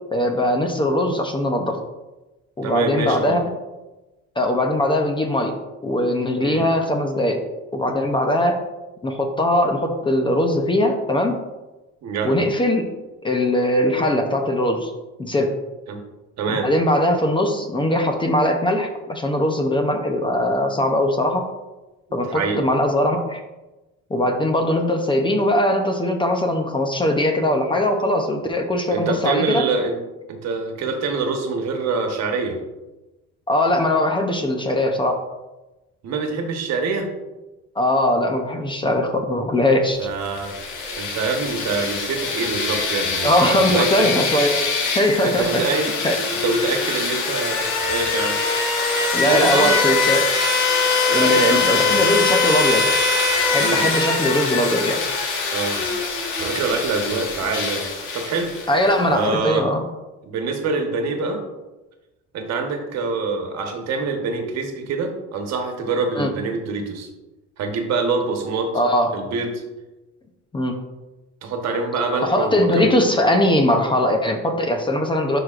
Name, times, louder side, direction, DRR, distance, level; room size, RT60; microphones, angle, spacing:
voice 1, 0.1-1.8 2.6-3.5 4.4-5.5 5.8-7.4 7.7-8.6 9.0-11.4 12.2-12.9 13.2-14.9 15.2-15.6 16.5-21.5 22.1-23.4 24.1-29.7 33.5-35.2 37.8-40.0 43.2-44.6 44.9-46.2 49.1-50.3 51.1-52.9 53.5-55.0 58.7-59.8 66.1-66.3 68.7-69.2 70.5-70.8 72.2-75.4, left 1 dB, 15° left, 4 dB, 0.6 m, -20 dB
voice 2, 2.6-3.4 6.4-6.6 12.0-12.4 15.9-16.0 16.4-16.7 22.3-22.6 28.9-30.0 30.3-32.6 36.0-37.1 40.0-40.5 41.0-44.1 45.2-45.9 46.4-47.6 47.9-48.4 49.2-49.9 51.1-52.1 53.6-53.8 55.5-55.8 56.4-57.8 58.1-58.5 59.1-59.7 60.2-61.4 62.3-67.1 67.6-68.7 69.1-69.6 71.4-73.0, right 4 dB, 60° right, 4 dB, 1.3 m, -25 dB
sound 1, 40.3-58.9, left 4 dB, 80° left, 1.6 m, -22 dB
11.0 x 4.8 x 2.5 m, 1.1 s
cardioid pair, 135°, 30 cm